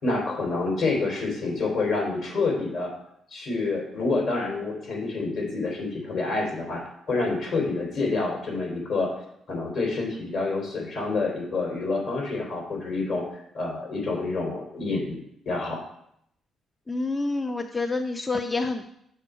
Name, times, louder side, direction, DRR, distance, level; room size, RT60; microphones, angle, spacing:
voice 1, 0.0-2.9 3.3-9.1 9.5-13.3 13.5-15.2 15.4-15.8, left 3 dB, 60° left, 0 dB, 3.3 m, -28 dB
voice 2, 16.9-18.9, left 3 dB, 20° left, 7 dB, 0.5 m, -28 dB
6.8 x 6.4 x 4.9 m, 0.74 s
cardioid pair, 90°, 0 cm